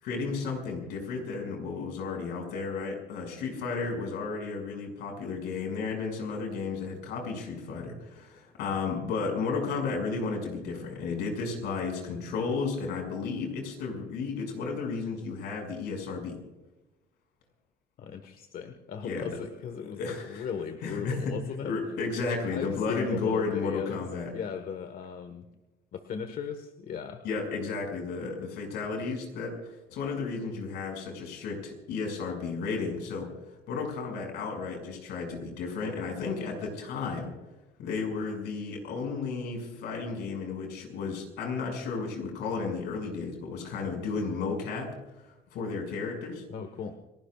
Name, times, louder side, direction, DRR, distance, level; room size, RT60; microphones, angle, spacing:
voice 1, 0.0-16.3 19.0-19.3 20.0-20.5 20.8-21.3 21.6-24.3 27.2-33.3 33.7-37.3 37.8-44.9 45.2-46.4, left 4 dB, 80° left, 2 dB, 6.1 m, -33 dB
voice 2, 18.0-22.0 22.5-24.0 24.3-25.5 25.9-27.2 46.5-46.9, left 7 dB, 60° left, 7 dB, 1.4 m, -37 dB
30.0 x 18.0 x 2.4 m, 1.1 s
cardioid pair, 110°, 17 cm